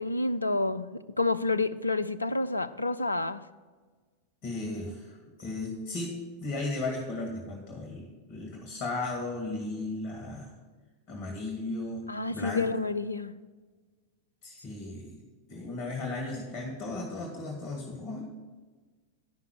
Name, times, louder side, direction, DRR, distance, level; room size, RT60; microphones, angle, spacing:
voice 1, 0.0-3.4 12.1-13.4, left 2 dB, 80° left, 14 dB, 0.4 m, -29 dB
voice 2, 4.4-10.5 11.1-12.7 14.4-15.2 15.5-18.3, left 2 dB, 35° left, 2 dB, 1.7 m, -36 dB
10.5 x 5.8 x 6.2 m, 1.4 s
figure-of-eight pair, 90°, 0 cm